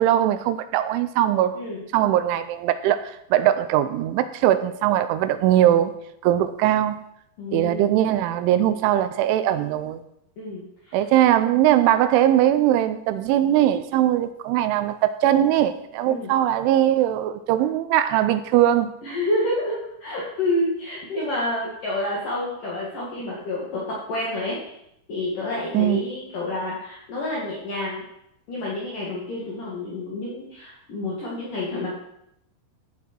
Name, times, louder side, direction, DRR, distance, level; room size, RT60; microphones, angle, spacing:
voice 1, 0.0-1.6 1.9-5.9 6.2-7.0 7.5-10.0 10.9-18.9 25.7-26.0, right 12 dB, 80° right, 3.0 m, -20 dB
voice 2, 7.4-7.9 10.4-11.0 16.1-16.3 19.0-24.7 25.1-28.0 28.5-31.9, left 1 dB, 50° left, 3.4 m, -29 dB
14.5 x 9.2 x 4.6 m
omnidirectional pair, 5.7 m